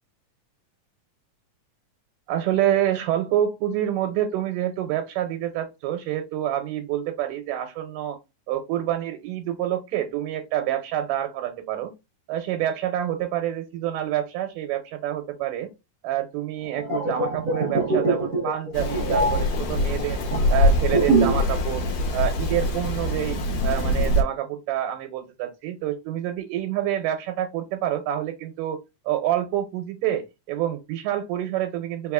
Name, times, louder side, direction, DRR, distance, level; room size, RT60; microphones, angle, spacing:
voice 1, 2.3-8.2 8.5-11.9 12.3-15.7 16.0-20.2 20.5-21.9 22.1-28.8 29.1-32.1, right 12 dB, 85° right, 6 dB, 2.2 m, -27 dB
sound 1, 16.6-21.5 21.8-22.0, right 3 dB, 70° right, 0.8 m, -24 dB
Rain, 18.7-24.2, left 1 dB, 70° left, 1.7 m, -24 dB
4.7 x 3.5 x 2.4 m, 0.23 s
omnidirectional pair, 3.8 m